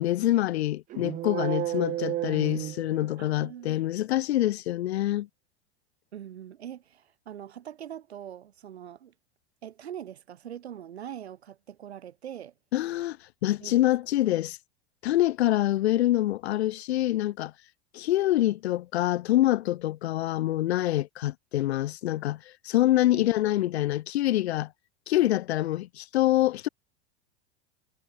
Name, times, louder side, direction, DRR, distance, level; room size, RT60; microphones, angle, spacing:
voice 1, 0.0-5.3 12.7-13.2 13.4-14.6 15.0-17.5 17.9-24.7 25.1-26.7, left 14 dB, 85° left, 0.7 m, -25 dB
sound 1, 0.9-3.5, right 14 dB, 30° right, 0.3 m, -32 dB
voice 2, 3.2-3.8 6.1-9.1 9.6-12.5 13.6-13.8 23.1-23.3, right 10 dB, 90° right, 2.5 m, -42 dB
hypercardioid pair, 90°, 31 cm